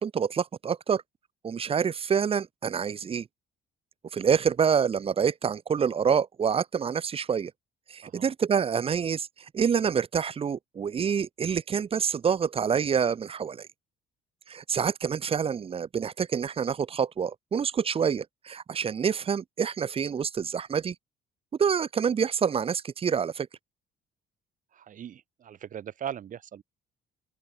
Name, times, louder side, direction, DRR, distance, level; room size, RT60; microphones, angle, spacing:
voice 1, 0.0-1.0 1.4-3.3 4.1-7.5 7.9-9.3 9.5-13.7 14.5-20.9 21.6-23.5, right 7 dB, 35° right, 1.1 m, -27 dB
voice 2, 24.7-26.6, right 9 dB, 50° right, 4.1 m, -39 dB
open air
cardioid pair, 110°, 17 cm